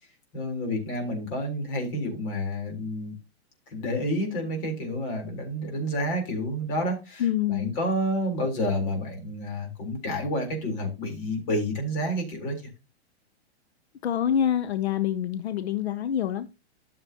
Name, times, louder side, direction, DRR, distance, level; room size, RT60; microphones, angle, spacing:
voice 1, 0.3-3.2 3.7-12.6, equal, 30° left, 2 dB, 3.8 m, -29 dB
voice 2, 7.2-7.7 14.0-16.5, left 10 dB, 65° left, 12 dB, 0.8 m, -26 dB
13.0 x 6.8 x 2.9 m, 0.26 s
hypercardioid pair, 175°, 35 cm